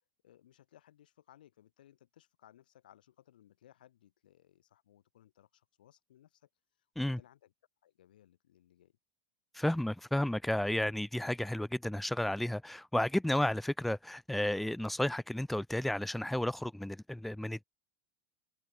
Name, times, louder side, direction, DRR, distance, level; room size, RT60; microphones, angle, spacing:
voice 1, 0.2-6.5 7.0-7.5 7.8-9.0, left 12 dB, 90° left, 7.6 m, -63 dB
voice 2, 9.5-17.6, left 1 dB, 5° left, 0.9 m, -32 dB
open air
supercardioid pair, 120°, 5 cm